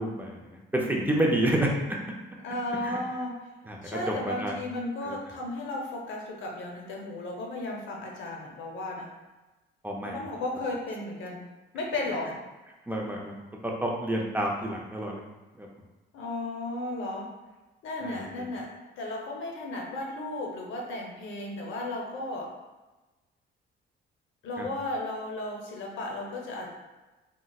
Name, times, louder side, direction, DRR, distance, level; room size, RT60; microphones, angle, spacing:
voice 1, 0.0-2.0 2.8-3.0 3.7-3.8 4.1-4.5 5.0-5.2 9.8-10.2 12.9-13.3 13.6-15.2 15.6-15.7 18.0-18.2 24.6-24.7, right 1 dB, 10° right, -2 dB, 0.4 m, -29 dB
voice 2, 2.4-3.4 3.8-9.1 10.0-11.5 11.7-12.3 16.1-17.3 17.8-18.7 19.0-22.5 24.4-26.7, left 2 dB, 75° left, 0 dB, 0.7 m, -34 dB
3.8 x 2.1 x 2.3 m, 1.1 s
cardioid pair, 90°, 20 cm